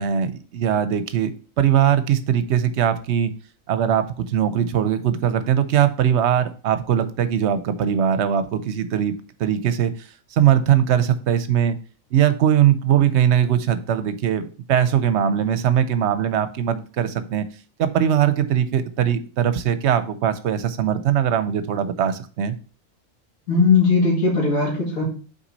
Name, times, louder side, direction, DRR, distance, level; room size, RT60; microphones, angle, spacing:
voice 1, 0.0-3.3 3.7-9.1 9.4-9.9 10.3-11.8 12.1-17.5 17.8-22.6, right 9 dB, 60° right, 12 dB, 0.8 m, -20 dB
voice 2, 23.5-25.0, left 4 dB, 80° left, -6 dB, 2.7 m, -18 dB
6.0 x 4.3 x 4.0 m, 0.39 s
omnidirectional pair, 1.4 m